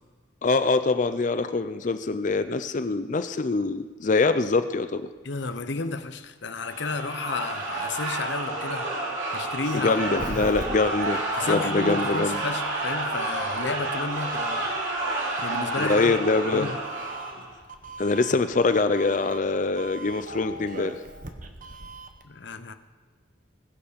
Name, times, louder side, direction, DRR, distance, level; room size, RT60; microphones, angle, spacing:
voice 1, 0.4-5.0 9.8-12.4 15.8-16.7 18.0-21.0, left 3 dB, 40° left, 11 dB, 0.4 m, -24 dB
voice 2, 5.2-8.9 9.3-10.5 11.4-14.7 15.4-16.2 16.5-16.7 22.2-22.7, left 3 dB, 65° left, 10 dB, 0.8 m, -32 dB
sound 1, 6.6-17.5, right 2 dB, 75° right, 2.8 m, -30 dB
Doorbell, 9.4-22.2, right 2 dB, 40° right, 1.0 m, -41 dB
21.0 x 7.1 x 5.1 m, 1.5 s
head